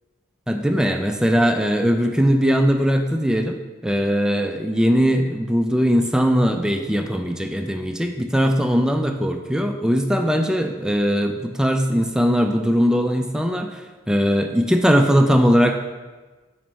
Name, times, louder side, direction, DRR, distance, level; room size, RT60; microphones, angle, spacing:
voice 1, 0.5-3.6 3.8-15.8, equal, 5° right, 4 dB, 0.3 m, -20 dB
7.2 x 4.3 x 3.1 m, 1.3 s
head